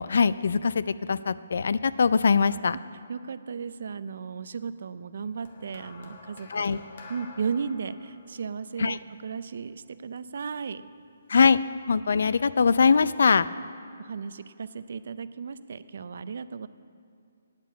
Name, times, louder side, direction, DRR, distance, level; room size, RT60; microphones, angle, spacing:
voice 1, 0.0-2.8 6.5-6.8 8.8-9.0 11.3-11.6 11.9-13.5, left 5 dB, 65° left, 16 dB, 0.4 m, -22 dB
voice 2, 3.1-6.8 7.1-9.0 9.2-10.8 14.0-16.7, right 6 dB, 60° right, 14 dB, 0.5 m, -35 dB
sound 1, 5.5-9.9 10.8-11.1, left 3 dB, 50° left, 1.4 m, -49 dB
9.0 x 8.3 x 8.5 m, 2.4 s
hypercardioid pair, 165°, 0 cm